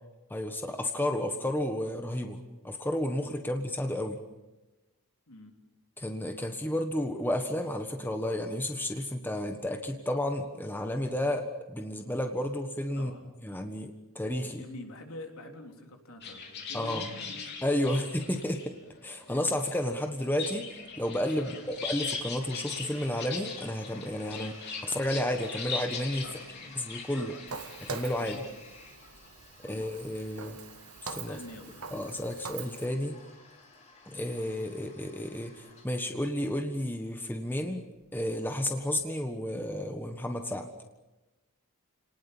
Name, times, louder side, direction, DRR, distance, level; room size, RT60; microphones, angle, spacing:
voice 1, 0.3-4.2 6.0-13.1 13.4-14.6 16.7-17.1 17.6-18.7 19.0-20.7 21.0-24.5 24.8-26.3 26.8-27.3 27.8-28.4 29.6-30.6 31.0-31.4 31.9-33.2 34.1-37.8 38.1-40.7, left 1 dB, 10° left, 5 dB, 1.4 m, -32 dB
voice 2, 13.0-13.3 14.6-18.0 21.4-21.6 24.3-24.6 26.2-26.8 27.2-27.6 28.2-28.5 29.6-29.9 31.2-31.8, left 1 dB, 75° left, 2 dB, 3.6 m, -47 dB
sound 1, 16.2-28.4, left 5 dB, 50° left, 4.0 m, -40 dB
Toilet flush, 22.4-39.1, left 3 dB, 30° left, 4.6 m, -54 dB
Walk footsteps, 27.5-32.9, right 5 dB, 80° right, 1.3 m, -43 dB
30.0 x 19.0 x 7.2 m, 1.1 s
head